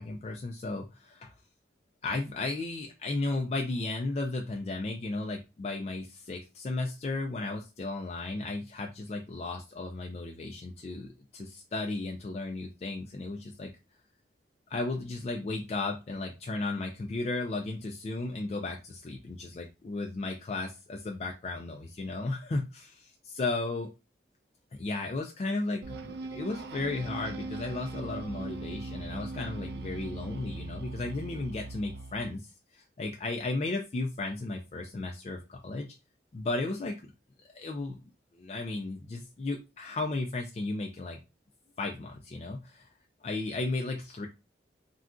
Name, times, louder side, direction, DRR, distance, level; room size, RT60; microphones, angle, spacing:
voice 1, 0.0-1.3 2.0-13.7 14.7-23.9 24.7-35.9 36.3-37.0 37.5-38.0 38.3-41.2 41.8-42.9 43.2-44.3, left 2 dB, 35° left, 2 dB, 0.3 m, -34 dB
sound 1, 25.8-32.3, right 2 dB, 60° right, 0.3 m, -40 dB
2.4 x 2.3 x 3.6 m, 0.28 s
head